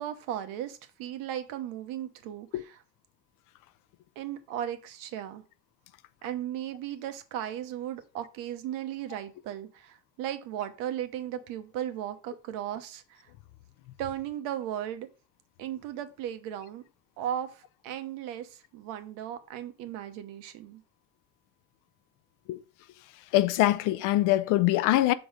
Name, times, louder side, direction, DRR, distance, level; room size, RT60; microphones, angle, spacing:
voice 1, 0.0-2.8 4.2-5.4 6.2-13.3 14.0-15.1 15.6-16.8 17.2-20.8, right 11 dB, 85° right, 1.1 m, -36 dB
voice 2, 23.3-25.1, left 15 dB, 70° left, 0.5 m, -23 dB
6.1 x 3.9 x 4.8 m
cardioid pair, 155°, 32 cm